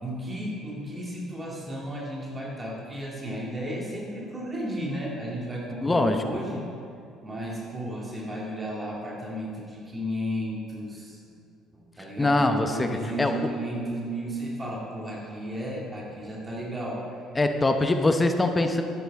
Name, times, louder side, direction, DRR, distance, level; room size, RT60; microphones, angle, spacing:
voice 1, 0.0-6.7 7.2-11.2 11.7-17.1, equal, 25° right, -3 dB, 2.3 m, -34 dB
voice 2, 5.8-6.2 12.2-12.9 13.2-13.4 17.4-18.8, left 2 dB, 20° left, 6 dB, 0.9 m, -22 dB
11.5 x 9.2 x 3.7 m, 2.4 s
hypercardioid pair, 60°, 0 cm